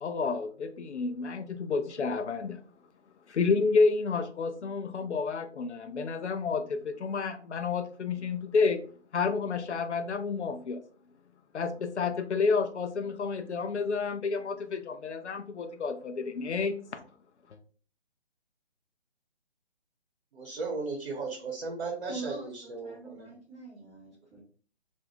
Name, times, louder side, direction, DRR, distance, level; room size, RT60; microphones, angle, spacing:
voice 1, 0.0-2.6 3.3-8.8 9.1-10.8 11.5-17.0, left 4 dB, 85° left, 9 dB, 0.5 m, -30 dB
voice 2, 20.3-23.3, right 3 dB, 55° right, 0 dB, 1.0 m, -36 dB
voice 3, 22.1-24.4, right 3 dB, ahead, -14 dB, 0.5 m, -43 dB
2.5 x 2.1 x 2.9 m, 0.43 s
figure-of-eight pair, 140°, 34 cm